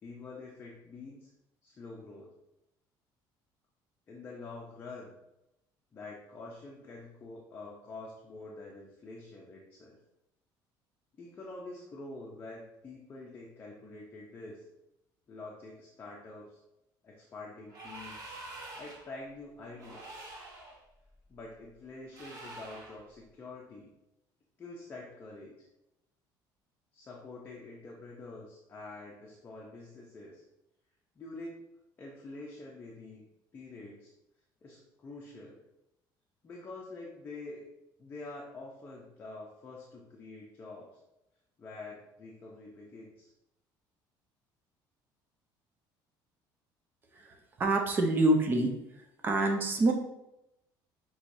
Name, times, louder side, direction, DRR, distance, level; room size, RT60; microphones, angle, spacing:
voice 1, 0.0-1.3 1.6-2.3 4.1-5.1 5.9-10.0 11.2-14.7 15.3-16.6 17.0-18.1 18.8-20.3 21.3-23.9 24.6-25.7 26.9-30.4 31.2-31.6 32.0-33.3 33.5-34.1 34.6-35.6 36.4-37.6 38.0-41.0 41.6-43.3, left 2 dB, 25° left, -3 dB, 0.6 m, -46 dB
sound 1, 17.7-19.1 19.7-20.8 22.1-23.0, right 2 dB, 40° right, 1.0 m, -46 dB
voice 2, 47.2-48.7 49.2-49.9, right 2 dB, 25° right, 3 dB, 0.6 m, -26 dB
6.2 x 3.0 x 2.6 m, 0.88 s
cardioid pair, 170°, 9 cm